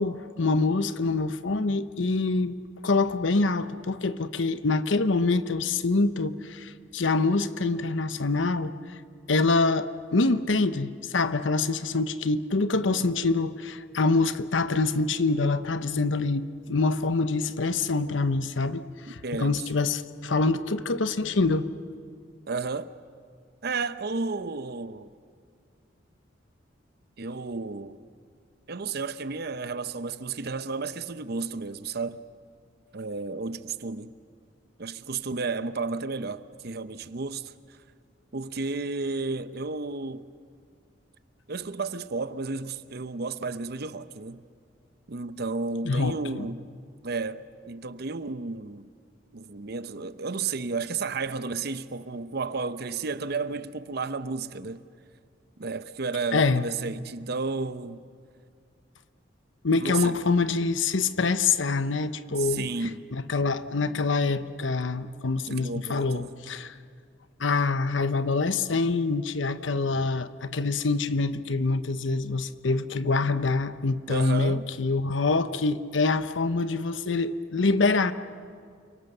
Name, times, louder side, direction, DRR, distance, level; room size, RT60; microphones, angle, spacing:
voice 1, 0.0-2.6 2.8-8.7 9.3-21.7 45.8-46.5 56.3-56.7 59.6-62.7 63.1-66.8 67.4-78.1, left 3 dB, 85° left, 0.9 m, -25 dB
voice 2, 19.2-19.6 22.5-22.9 23.6-25.1 27.2-28.1 28.7-32.2 32.9-34.1 34.8-37.8 38.3-40.3 41.5-44.4 45.1-46.6 47.0-48.9 49.3-54.8 55.6-58.0 59.8-60.2 62.4-63.0 65.5-66.4 74.1-74.7, right 4 dB, 55° right, 0.8 m, -32 dB
29.0 x 24.0 x 6.7 m
head